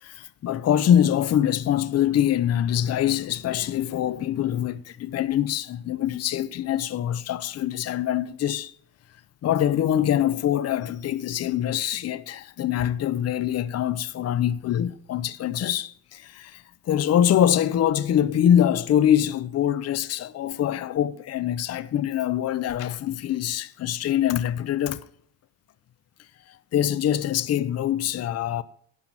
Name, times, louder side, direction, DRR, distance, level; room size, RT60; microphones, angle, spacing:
voice 1, 0.0-8.7 9.4-25.0 26.5-28.6, left 10 dB, 55° left, 0.7 m, -24 dB
12.0 x 5.6 x 8.9 m
cardioid pair, 90°, 30 cm